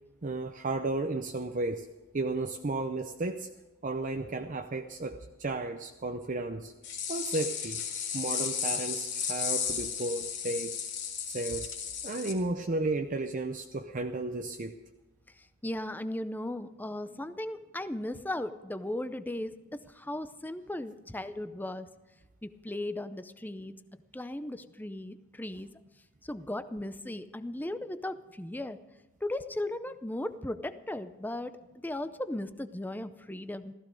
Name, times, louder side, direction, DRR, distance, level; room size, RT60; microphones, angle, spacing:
voice 1, 0.2-1.9 2.1-3.5 3.8-6.7 7.1-7.8 8.1-10.8 11.2-11.7 12.0-14.8, right 2 dB, 40° right, 5 dB, 0.7 m, -33 dB
sound 1, 6.8-12.3, left 7 dB, 55° left, 2.7 m, -34 dB
voice 2, 15.3-21.9 22.4-23.8 24.1-25.7 26.2-28.8 29.2-33.7, left 1 dB, 10° left, 11 dB, 0.5 m, -37 dB
15.5 x 14.5 x 5.2 m, 1.1 s
head